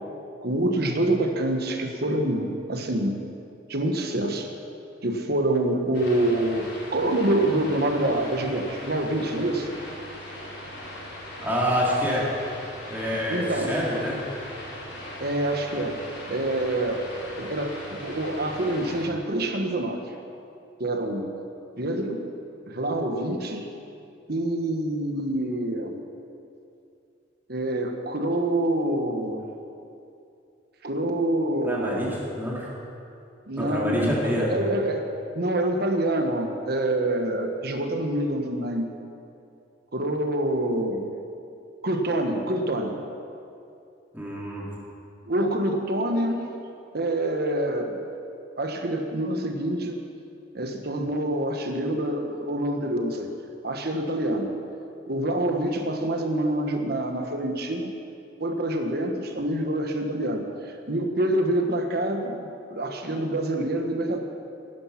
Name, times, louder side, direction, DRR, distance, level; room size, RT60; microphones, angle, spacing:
voice 1, 0.4-3.2 3.7-4.5 5.0-9.7 13.1-13.8 15.2-16.0 16.3-17.0 17.4-20.0 20.8-21.3 21.8-22.3 22.7-23.7 24.3-26.0 27.5-29.4 30.8-32.1 33.5-35.1 35.3-38.9 39.9-41.1 41.8-43.0 45.3-46.5 46.9-48.0 48.6-50.0 50.5-53.3 53.6-54.5 55.1-57.9 58.4-64.2, right 1 dB, 55° right, 4 dB, 1.4 m, -26 dB
sound 1, 5.9-19.1, left 1 dB, 65° left, 4.7 m, -39 dB
voice 2, 11.4-12.3 12.9-13.4 13.7-14.1 31.6-32.1 32.4-32.7 33.6-34.5 44.1-44.7, equal, 10° right, -6 dB, 3.7 m, -26 dB
16.0 x 12.0 x 5.9 m, 2.6 s
head